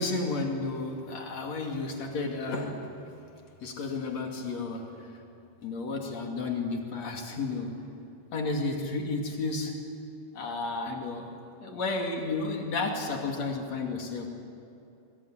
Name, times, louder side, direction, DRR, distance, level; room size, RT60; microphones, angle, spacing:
voice 1, 0.0-2.9 3.6-4.8 5.6-7.7 8.3-9.8 10.3-11.3 11.6-14.3, left 3 dB, 40° left, 2 dB, 2.8 m, -32 dB
24.5 x 23.0 x 10.0 m, 2.6 s
omnidirectional pair, 5.9 m